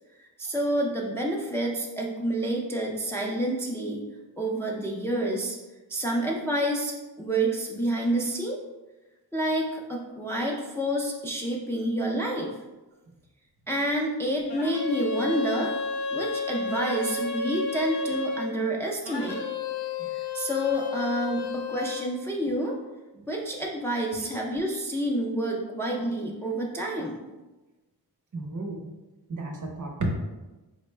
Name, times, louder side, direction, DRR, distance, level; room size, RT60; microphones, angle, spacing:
voice 1, 0.2-4.0 4.4-5.6 5.9-6.9 7.2-8.6 9.3-12.5 13.7-15.7 16.1-19.4 20.1-22.8 23.3-27.2, right 1 dB, 5° left, -1 dB, 0.4 m, -28 dB
sound 1, 14.5-18.5 19.0-22.1, left 3 dB, 75° left, 0.6 m, -32 dB
voice 2, 28.3-28.8 29.3-30.2, right 2 dB, 50° right, 1 dB, 0.7 m, -32 dB
4.0 x 2.1 x 3.2 m, 1.1 s
wide cardioid pair, 80°, 40 cm